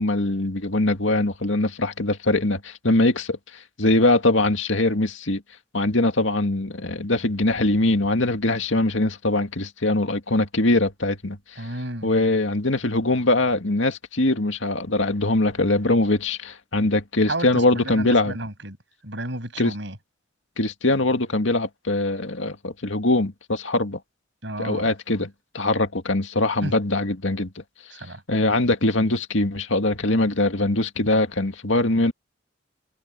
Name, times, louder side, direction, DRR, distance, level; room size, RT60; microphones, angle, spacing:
voice 1, 0.0-5.4 5.7-11.4 12.0-18.4 19.6-19.7 20.6-24.0 24.6-27.5 28.3-32.1, left 2 dB, 75° left, 2.2 m, -22 dB
voice 2, 11.6-12.1 17.3-18.8 19.0-20.0 24.4-24.9 26.6-26.7 27.9-28.2, right 1 dB, 65° right, 7.8 m, -32 dB
head